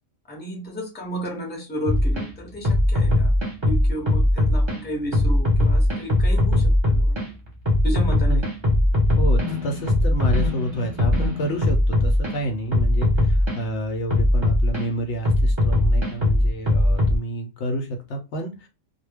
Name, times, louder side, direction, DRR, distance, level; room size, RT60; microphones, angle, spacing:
voice 1, 0.3-3.3 3.6-7.3 7.8-8.4, equal, 10° left, 0.7 m, -33 dB
sound 1, 1.9-2.2 2.6-4.8 5.1-7.3 7.7-12.3 12.7-13.6 14.1-14.8 15.2-17.2, left 1 dB, 25° right, 0.8 m, -20 dB
voice 2, 9.2-18.7, right 1 dB, 65° left, 0.9 m, -29 dB
2.2 x 2.2 x 3.3 m
omnidirectional pair, 1.4 m